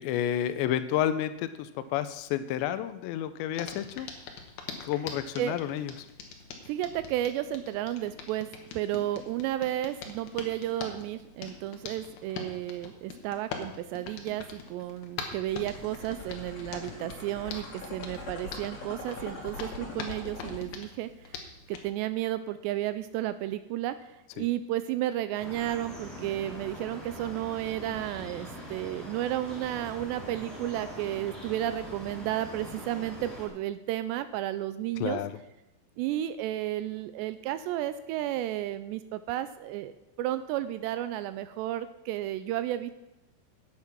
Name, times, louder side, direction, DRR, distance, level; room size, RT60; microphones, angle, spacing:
voice 1, 0.0-4.1 4.8-5.9 24.4-24.5 35.0-35.3, left 11 dB, 85° left, 12 dB, 2.8 m, -30 dB
Hands, 3.6-21.9, left 6 dB, 70° left, 2.9 m, -44 dB
voice 2, 6.7-8.5 8.7-21.4 21.7-35.2 36.0-42.9, right 13 dB, 85° right, 12 dB, 2.6 m, -32 dB
sound 1, 15.5-20.6, left 2 dB, 45° left, 2.8 m, -42 dB
sound 2, 25.4-33.5, equal, ahead, 2.5 m, -43 dB
9.7 x 8.6 x 5.9 m, 0.94 s
omnidirectional pair, 5.2 m